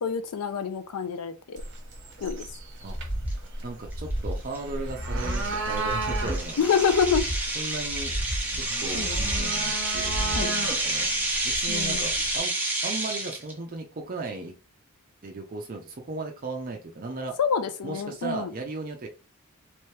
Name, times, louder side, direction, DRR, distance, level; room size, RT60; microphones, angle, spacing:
voice 1, 0.0-1.6 2.2-2.5 6.6-7.3 8.9-9.2 10.3-10.5 11.7-12.1 17.4-18.5, left 6 dB, 90° left, 0.4 m, -27 dB
sound 1, 1.6-12.4, right 3 dB, 55° right, 1.0 m, -35 dB
sound 2, 2.9-3.4 3.8-4.4 4.8-5.4 5.8-6.4 6.9-7.5 7.9-8.5 8.9-9.5 9.9-10.5, right 1 dB, 45° left, 2.2 m, -32 dB
sound 3, 3.3-3.4 3.9-4.1 4.6-4.7 5.2-13.5, right 1 dB, 10° right, 0.8 m, -29 dB
voice 2, 3.6-6.6 7.6-8.1 8.8-11.1 11.4-12.5 12.8-14.6 15.2-17.4 17.8-19.1, right 3 dB, 40° right, 0.5 m, -36 dB
3.3 x 2.9 x 3.2 m
head